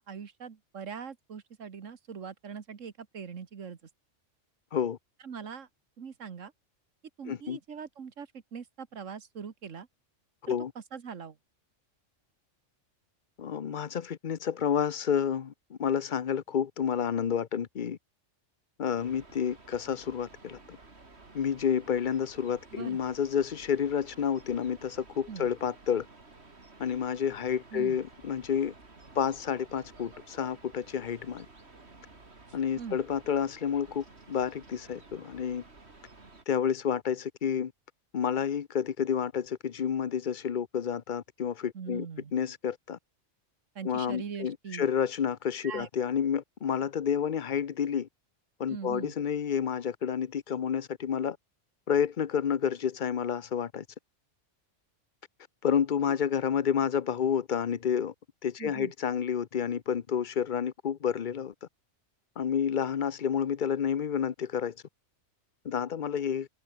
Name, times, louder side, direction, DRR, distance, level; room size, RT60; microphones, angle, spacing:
voice 1, 0.0-3.8 5.2-5.7 6.0-6.5 7.2-9.9 10.5-11.4 22.7-23.0 25.3-25.5 27.7-28.0 32.8-33.0 41.7-42.3 43.8-44.9 45.6-45.9 48.7-49.1 56.1-56.2 58.6-58.9, right 6 dB, 85° right, 1.8 m, -41 dB
voice 2, 7.3-7.6 10.4-10.7 13.4-18.0 18.8-20.8 21.3-26.1 26.8-28.7 29.2-31.5 32.5-35.6 36.5-37.7 38.1-42.1 42.3-43.0 43.8-48.1 48.6-51.4 51.9-53.8 55.6-58.1 58.4-61.5 62.4-64.7 65.6-66.5, left 8 dB, 45° left, 0.8 m, -30 dB
sound 1, 19.0-36.5, right 3 dB, 60° right, 3.4 m, -53 dB
omnidirectional pair, 1.3 m